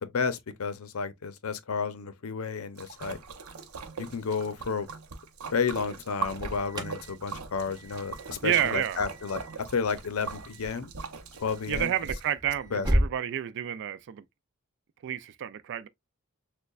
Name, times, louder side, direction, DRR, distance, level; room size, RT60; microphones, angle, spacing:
voice 1, 0.1-3.2 4.0-4.9 5.5-9.4 9.7-10.9 11.3-11.9 12.7-12.9, left 5 dB, 70° left, 0.6 m, -31 dB
Splash splatter, 2.8-12.3, right 4 dB, 85° right, 0.7 m, -41 dB
Alarm, 6.3-13.2, equal, 20° right, 0.6 m, -35 dB
voice 2, 8.4-9.0 11.7-14.2 15.0-15.9, right 10 dB, 55° right, 0.3 m, -30 dB
6.4 x 2.2 x 2.3 m
head